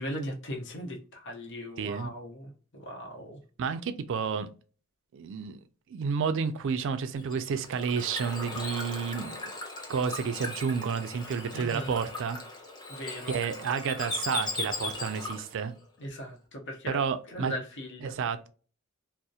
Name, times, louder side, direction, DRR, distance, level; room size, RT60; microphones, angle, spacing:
voice 1, 0.0-3.4 11.5-12.0 12.9-13.4 16.0-17.0 17.3-18.2, equal, 60° left, 0.7 m, -38 dB
voice 2, 1.8-2.1 3.6-4.5 5.1-5.6 5.9-9.4 9.9-12.4 13.3-15.7 16.9-17.5 18.0-18.5, right 6 dB, 60° right, 0.3 m, -30 dB
Bird / Water, 7.2-15.6, left 2 dB, 20° left, 0.6 m, -38 dB
2.7 x 2.0 x 2.3 m
head